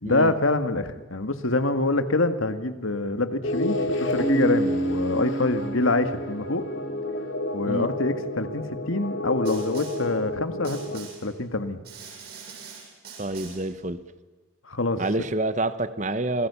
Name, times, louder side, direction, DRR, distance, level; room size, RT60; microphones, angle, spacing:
voice 1, 0.0-6.6 7.5-11.8 14.6-15.0, left 2 dB, 80° left, 10 dB, 2.0 m, -26 dB
sound 1, 3.4-11.0, left 1 dB, 65° left, 3.1 m, -31 dB
Keyboard (musical), 4.2-6.8, right 1 dB, 5° right, 2.9 m, -29 dB
Snare drum, 9.4-10.1 10.6-11.3 11.8-13.7, right 6 dB, 50° right, 7.8 m, -44 dB
voice 2, 13.2-14.0 15.0-16.5, right 2 dB, 35° right, 13 dB, 1.1 m, -27 dB
27.5 x 20.0 x 7.1 m, 1.3 s
head